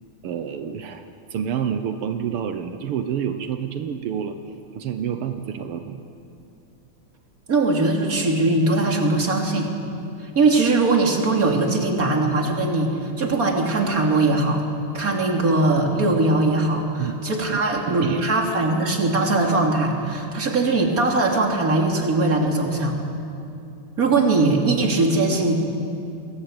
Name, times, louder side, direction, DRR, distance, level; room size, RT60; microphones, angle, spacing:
voice 1, 0.2-1.0 1.3-4.4 4.8-6.0 17.0-17.2 17.5-18.2, right 8 dB, 85° right, 7 dB, 2.0 m, -28 dB
voice 2, 7.5-9.7 10.4-14.6 14.9-23.0 24.0-25.5, right 2 dB, 40° right, 1 dB, 3.4 m, -20 dB
28.5 x 22.0 x 9.0 m, 2.6 s
omnidirectional pair, 2.4 m